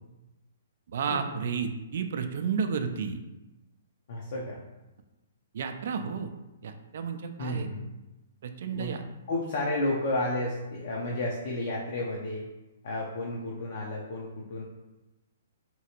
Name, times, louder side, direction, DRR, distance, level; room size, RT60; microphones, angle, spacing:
voice 1, 0.9-3.2 5.5-6.3 6.6-7.7 8.4-9.0, right 6 dB, 65° right, 7 dB, 0.3 m, -32 dB
voice 2, 4.1-4.6 7.4-7.8 8.7-9.0 9.3-12.4 12.8-14.6, left 1 dB, 60° left, -3 dB, 0.6 m, -31 dB
2.9 x 2.4 x 2.9 m, 1.0 s
hypercardioid pair, 135°, 0 cm